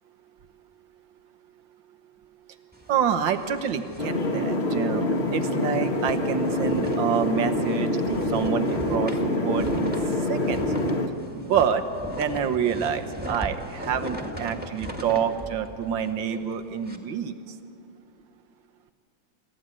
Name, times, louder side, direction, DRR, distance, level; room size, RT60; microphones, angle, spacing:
sound 1, 2.7-5.0 5.3-5.5 5.8-17.0, equal, 5° right, 1.7 m, -38 dB
voice 1, 2.9-5.0 5.3-9.9 10.3-10.6 11.4-11.8 12.1-17.3, right 7 dB, 80° right, 8 dB, 1.8 m, -27 dB
sound 2, 4.0-11.1, left 1 dB, 35° left, 1.7 m, -26 dB
26.0 x 14.0 x 9.7 m, 2.6 s
omnidirectional pair, 2.1 m